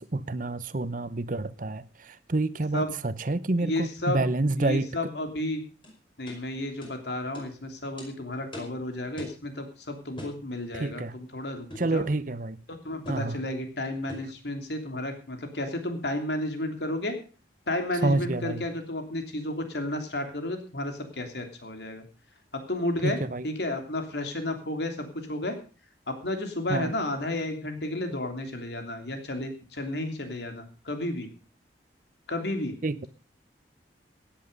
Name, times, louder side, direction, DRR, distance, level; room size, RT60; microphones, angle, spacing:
voice 1, 0.0-4.9 10.7-11.2 11.8-12.6 13.1-13.4 18.0-18.6 23.0-23.5 26.7-26.9 32.8-33.1, right 2 dB, 50° right, 0.8 m, -28 dB
voice 2, 3.6-4.3 4.6-5.6 6.2-12.0 12.8-17.1 17.7-22.0 22.7-23.2 23.4-25.5 26.1-31.3 32.3-32.7, left 1 dB, 70° left, 3.1 m, -32 dB
sound 1, 5.8-5.9 6.3-6.4 6.8-6.9 7.3-7.5 8.0-8.1 8.5-8.8 9.2-9.4 10.2-10.4 11.7-11.9 13.0-13.3 14.1-14.3, left 1 dB, 30° left, 5.3 m, -41 dB
16.5 x 10.5 x 5.3 m
head